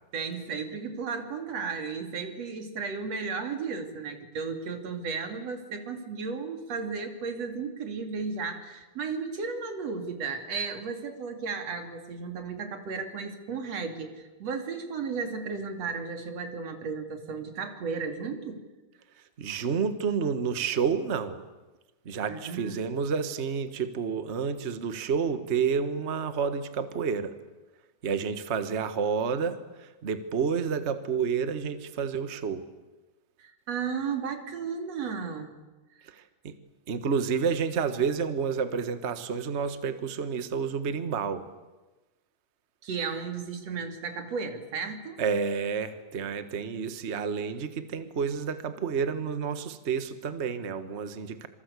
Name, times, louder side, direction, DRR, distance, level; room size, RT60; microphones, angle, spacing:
voice 1, 0.1-18.6 22.3-22.9 33.4-35.5 42.8-45.2, right 5 dB, 50° right, 6 dB, 3.5 m, -34 dB
voice 2, 19.4-21.4 22.0-27.3 28.0-32.6 36.1-36.6 36.9-41.5 45.2-51.5, right 6 dB, 80° right, 10 dB, 0.6 m, -30 dB
26.5 x 24.5 x 8.3 m, 1.1 s
omnidirectional pair, 3.8 m